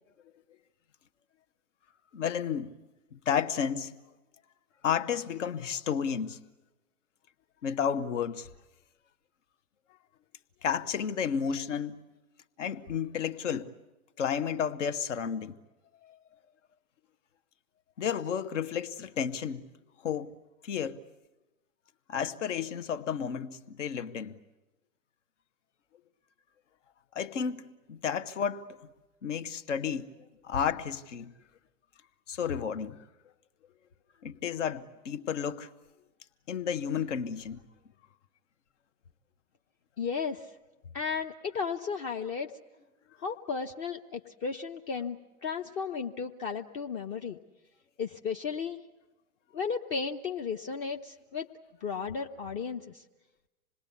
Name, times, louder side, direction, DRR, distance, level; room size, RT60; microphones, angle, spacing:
voice 1, 2.1-2.7 3.1-3.9 4.8-6.4 7.6-8.5 10.6-12.0 12.6-13.7 14.2-15.6 16.1-16.2 18.0-19.7 20.0-20.3 20.6-21.0 22.1-24.4 27.1-28.6 29.2-30.1 30.4-31.3 32.3-33.0 34.2-35.7 36.5-37.6, left 7 dB, 55° left, 1.4 m, -32 dB
voice 2, 40.0-40.5 40.9-42.5 43.2-47.4 48.0-48.8 49.5-51.5 51.8-53.0, left 5 dB, 30° left, 1.0 m, -34 dB
27.0 x 20.5 x 8.4 m
figure-of-eight pair, 110°, 42 cm